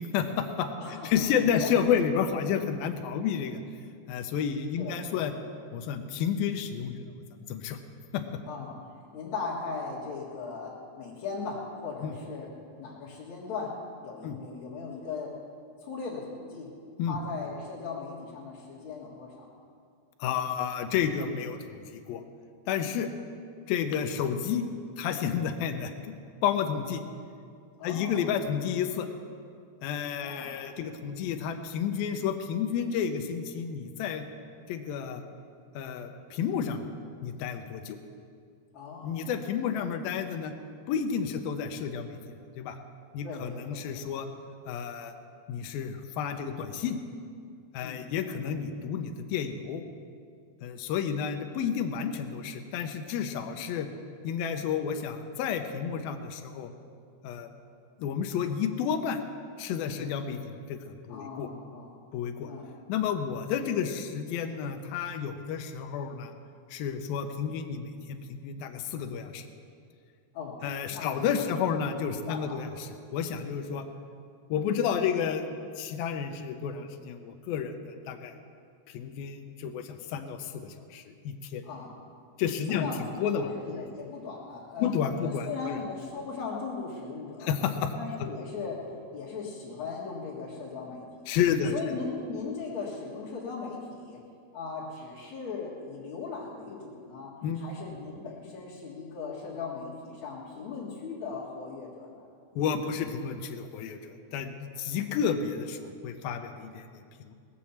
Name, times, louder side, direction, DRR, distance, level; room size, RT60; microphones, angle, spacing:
voice 1, 0.1-3.6 4.1-5.3 5.7-7.1 7.5-7.8 8.1-8.2 12.0-12.1 14.2-14.4 17.0-17.2 20.2-22.2 22.7-23.1 23.7-24.6 25.0-26.1 26.4-27.0 27.8-29.1 29.8-34.2 34.7-35.2 35.7-36.8 37.2-38.0 39.0-40.5 40.9-42.2 42.6-42.8 43.1-44.3 44.7-45.1 45.5-47.0 47.7-49.8 50.6-53.9 54.2-56.7 57.2-57.5 58.0-59.2 59.6-61.5 62.1-62.5 62.9-66.3 66.7-69.5 70.6-73.9 74.5-75.5 75.8-78.4 78.9-81.6 82.4-82.9 83.2-83.5 84.8-85.8 87.4-87.9 91.3-92.0 97.4-97.6 102.6-107.3, left 7 dB, 80° left, 6 dB, 2.1 m, -31 dB
voice 2, 0.8-1.3 1.5-1.7 2.6-2.7 4.8-4.9 8.5-13.8 14.0-15.4 15.8-16.7 17.1-19.5 27.8-28.3 30.2-30.5 38.7-39.3 43.2-44.1 47.8-48.0 53.4-53.6 59.9-60.1 61.1-61.9 62.4-62.7 70.3-70.6 70.9-71.6 72.3-72.6 81.6-82.0 82.7-87.5 87.9-91.2 91.7-94.2 94.5-102.3 104.9-105.0, left 4 dB, 50° left, -9 dB, 2.6 m, -38 dB
19.5 x 7.4 x 7.2 m, 2.3 s
omnidirectional pair, 5.1 m